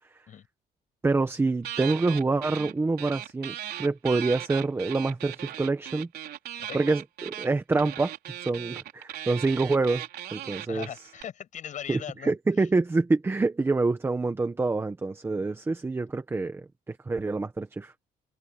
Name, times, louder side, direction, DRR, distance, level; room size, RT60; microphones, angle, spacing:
voice 1, 1.0-6.1 6.7-10.0 10.3-10.9 11.9-17.9, right 3 dB, 15° right, 1.2 m, -26 dB
sound 1, 1.6-2.7 3.0-11.2, right 12 dB, 75° right, 4.2 m, -38 dB
voice 2, 10.7-12.7, left 9 dB, 50° left, 7.3 m, -40 dB
cardioid pair, 165°, 16 cm